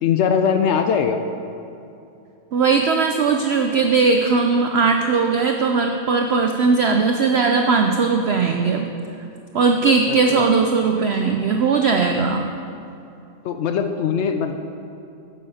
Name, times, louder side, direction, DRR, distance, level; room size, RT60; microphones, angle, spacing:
voice 1, 0.0-1.2 10.1-10.5 13.4-14.6, left 7 dB, 80° left, 6 dB, 0.6 m, -21 dB
voice 2, 2.5-8.9 9.5-12.4, right 4 dB, 80° right, 4 dB, 0.5 m, -18 dB
9.1 x 7.7 x 5.5 m, 2.7 s
omnidirectional pair, 1.7 m